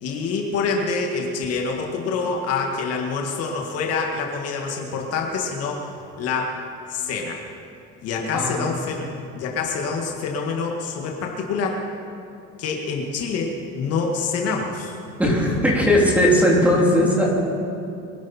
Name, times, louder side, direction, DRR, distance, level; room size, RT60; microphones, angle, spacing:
voice 1, 0.0-5.9 6.2-6.6 6.9-7.4 8.0-9.1 9.4-11.8 12.6-15.0, left 4 dB, 55° left, 1 dB, 2.0 m, -26 dB
voice 2, 8.3-8.7 15.2-17.3, equal, 5° right, -4 dB, 3.4 m, -18 dB
24.0 x 11.5 x 4.5 m, 2.6 s
cardioid pair, 140°, 29 cm